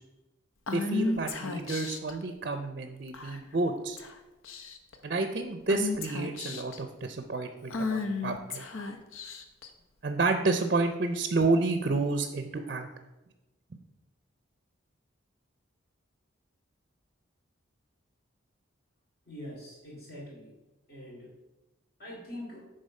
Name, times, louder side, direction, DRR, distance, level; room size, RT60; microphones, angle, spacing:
Female speech woman speaking / Whispering, 0.7-2.1 3.1-3.6 4.0-4.1 4.4-4.9 5.7-6.8 7.7-9.7, left 3 dB, 85° left, 0.8 m, -33 dB
voice 1, 0.7-4.0 5.0-8.6 10.0-12.9, right 3 dB, 45° right, 7 dB, 0.5 m, -30 dB
voice 2, 19.3-20.5 20.9-21.3 22.0-22.6, left 1 dB, 50° left, -5 dB, 3.0 m, -43 dB
10.5 x 3.8 x 5.3 m, 1.1 s
head